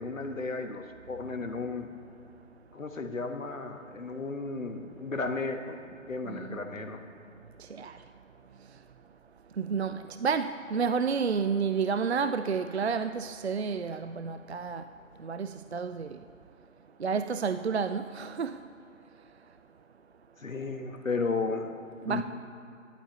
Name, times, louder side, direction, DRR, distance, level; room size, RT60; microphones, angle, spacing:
voice 1, 0.0-1.9 2.7-7.0 20.4-21.7 22.1-22.2, left 3 dB, 70° left, 1.5 m, -34 dB
voice 2, 6.3-6.6 7.6-8.0 9.6-14.8 15.2-16.2 17.0-18.6 22.0-22.2, right 5 dB, 55° right, 0.5 m, -30 dB
15.0 x 11.5 x 3.9 m
figure-of-eight pair, 150°, 41 cm